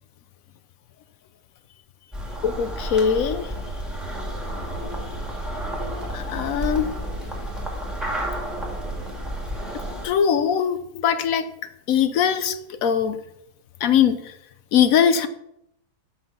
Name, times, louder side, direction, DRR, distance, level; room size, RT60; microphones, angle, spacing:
sound 1, 2.1-10.1, right 1 dB, ahead, 1.7 m, -31 dB
voice 1, 2.4-3.5 6.1-6.9 10.0-11.5 11.9-13.2 13.8-14.3 14.7-15.3, left 8 dB, 65° left, 11 dB, 1.0 m, -21 dB
7.7 x 5.6 x 5.5 m, 0.78 s
omnidirectional pair, 1.7 m